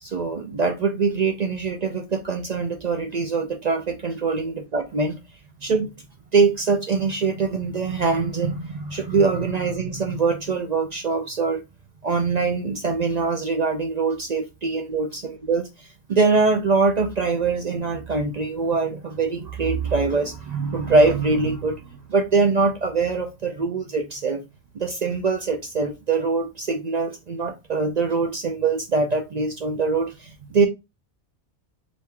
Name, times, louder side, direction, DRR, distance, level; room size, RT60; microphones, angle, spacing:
voice 1, 0.0-5.2 5.6-5.9 6.3-11.6 12.0-21.8 22.1-24.4 24.7-30.7, right 4 dB, 55° right, 0.5 m, -23 dB
3.6 x 2.6 x 4.3 m
omnidirectional pair, 1.2 m